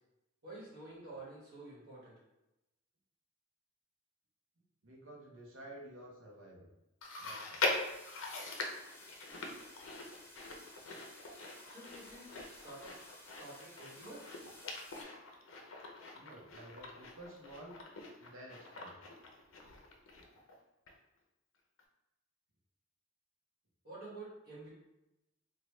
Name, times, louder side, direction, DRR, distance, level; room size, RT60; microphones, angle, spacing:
voice 1, 0.4-2.1 11.7-13.1 13.4-14.2 23.8-24.7, right 2 dB, 50° right, -7 dB, 1.5 m, -50 dB
voice 2, 4.8-6.7 7.2-7.7 15.8-17.8 18.2-19.0, right 1 dB, 70° right, -2 dB, 0.7 m, -52 dB
Chewing mastication, 7.0-20.6 20.9-21.0 21.8-21.9, left 3 dB, 75° left, 0.5 m, -42 dB
sound 1, 7.0-15.0, left 1 dB, 10° left, 0.5 m, -57 dB
3.1 x 2.2 x 3.0 m, 0.93 s
head